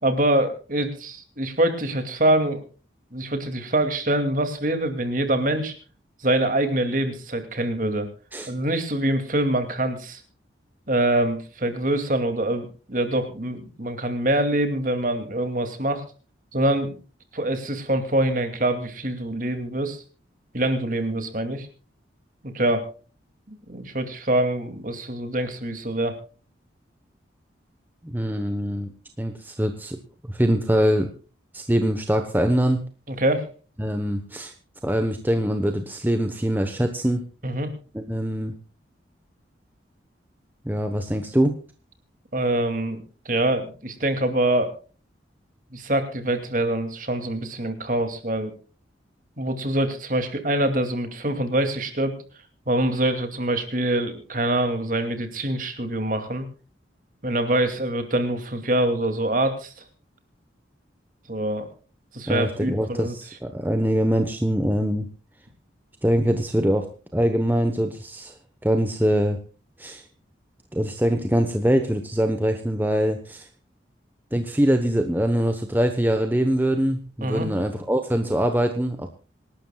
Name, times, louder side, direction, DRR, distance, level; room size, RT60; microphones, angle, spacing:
voice 1, 0.0-2.6 3.1-5.7 6.2-8.1 8.5-10.2 10.9-16.0 16.5-17.0 17.3-20.0 20.5-21.7 22.4-22.9 23.5-26.2 33.1-33.4 37.4-37.7 42.3-44.7 45.7-48.5 49.4-52.2 52.7-56.5 57.2-59.7 61.3-61.7 62.1-63.1 77.2-77.5, right 1 dB, 45° right, 7 dB, 2.6 m, -24 dB
voice 2, 28.0-28.9 29.2-30.0 30.3-31.1 31.5-32.8 33.8-34.5 34.8-37.2 37.9-38.6 40.6-41.6 62.3-65.1 66.0-66.9 67.1-68.3 68.6-69.4 69.8-70.0 70.7-73.5 74.3-79.1, equal, 10° right, 6 dB, 1.0 m, -23 dB
26.0 x 12.0 x 2.3 m, 0.36 s
head